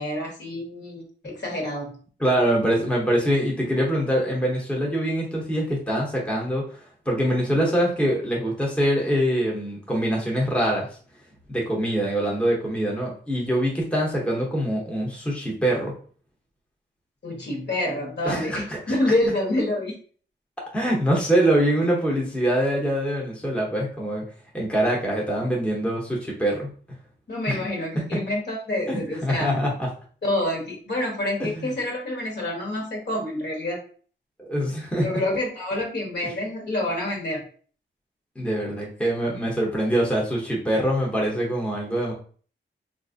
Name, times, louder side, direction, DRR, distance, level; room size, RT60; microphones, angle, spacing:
voice 1, 0.0-2.0 17.2-20.0 27.3-29.6 30.2-33.8 35.0-37.4, left 1 dB, 60° left, 0 dB, 1.1 m, -27 dB
voice 2, 2.2-11.0 11.5-15.9 18.2-19.0 20.7-24.3 24.5-26.7 27.5-27.6 28.0-28.2 28.9-29.9 31.4-31.7 34.4-35.1 38.4-42.1, right 1 dB, 5° left, -2 dB, 0.7 m, -24 dB
4.1 x 2.4 x 2.5 m, 0.43 s
wide cardioid pair, 170°, 20 cm